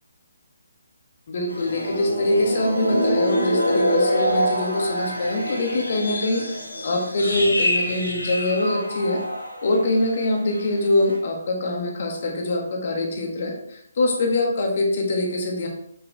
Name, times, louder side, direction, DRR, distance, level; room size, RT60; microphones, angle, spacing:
voice 1, 1.3-6.4 6.8-9.2 9.6-15.7, left 2 dB, 45° left, 1 dB, 1.6 m, -24 dB
sound 1, 1.5-10.1 10.4-10.6 11.0-11.2, equal, 75° left, 1.9 m, -25 dB
7.0 x 6.3 x 3.4 m, 0.74 s
figure-of-eight pair, 140°, 0 cm